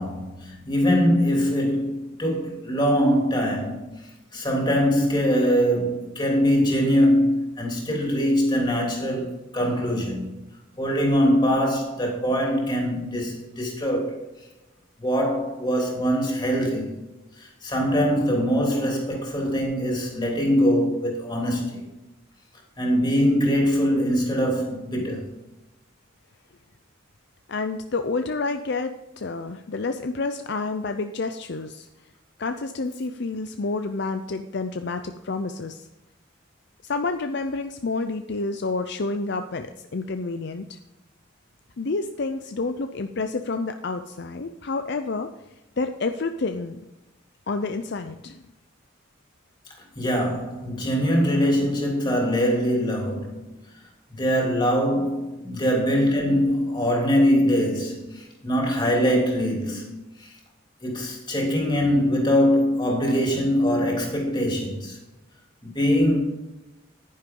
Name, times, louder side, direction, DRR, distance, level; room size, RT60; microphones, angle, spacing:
voice 1, 0.0-4.0 4.3-10.4 10.8-14.1 15.0-17.0 17.4-21.8 22.8-25.3 49.9-53.5 54.1-60.3 60.8-65.0 65.6-66.2, equal, 20° left, 3.1 m, -23 dB
voice 2, 27.5-31.9 32.4-35.9 36.8-40.8 41.8-45.3 45.8-46.8 47.5-48.4, left 3 dB, 55° left, 0.5 m, -29 dB
10.5 x 10.0 x 3.8 m
head